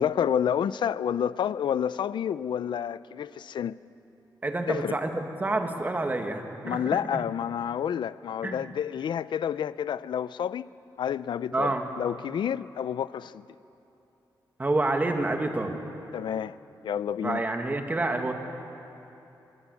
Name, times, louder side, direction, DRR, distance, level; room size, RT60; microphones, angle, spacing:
voice 1, 0.0-3.8 4.7-5.0 6.6-10.7 11.0-13.4 16.1-16.6 16.8-17.4, left 9 dB, 80° left, 0.5 m, -29 dB
voice 2, 4.4-7.2 8.4-8.7 11.5-11.9 14.6-15.8 17.2-18.3, right 2 dB, 20° right, 2.0 m, -28 dB
24.5 x 22.0 x 8.3 m
wide cardioid pair, 140°, 8 cm